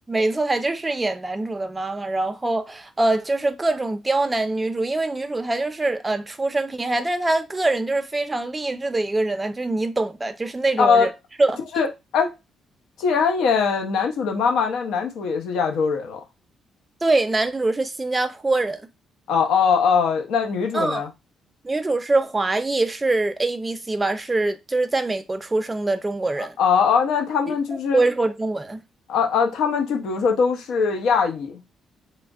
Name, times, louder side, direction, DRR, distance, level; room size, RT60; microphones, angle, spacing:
voice 1, 0.1-11.1 11.4-11.6 17.0-18.9 20.7-21.1 21.6-26.6 27.5-27.6 27.9-28.8, right 2 dB, 20° right, 0.4 m, -24 dB
voice 2, 10.8-11.1 11.7-11.9 12.1-12.3 13.0-16.2 19.3-21.1 26.6-28.0 29.1-31.6, left 6 dB, 80° left, 0.8 m, -21 dB
3.1 x 2.1 x 3.5 m
cardioid pair, 90°, 0 cm